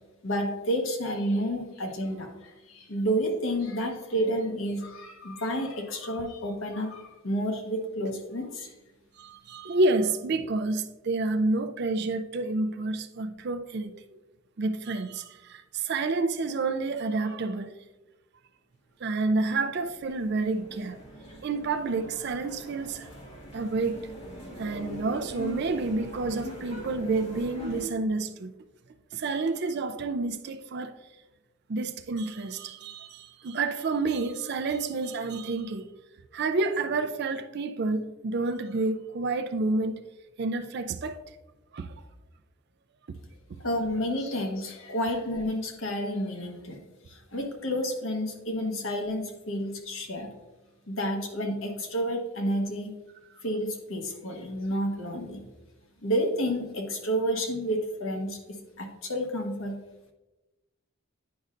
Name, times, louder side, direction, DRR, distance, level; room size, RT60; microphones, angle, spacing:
voice 1, 0.2-8.7 43.6-46.8 47.1-50.4 50.9-52.9 53.4-55.4 56.0-59.8, equal, 65° left, 1.1 m, -30 dB
voice 2, 9.2-14.2 14.6-17.7 19.0-21.0 21.4-23.1 23.5-24.1 24.6-28.5 29.1-31.0 31.7-35.9 36.3-40.0 40.4-41.2 41.7-41.9, right 3 dB, 50° right, 0.4 m, -29 dB
sound 1, 19.2-27.9, equal, 30° left, 1.5 m, -42 dB
9.3 x 5.4 x 2.5 m
head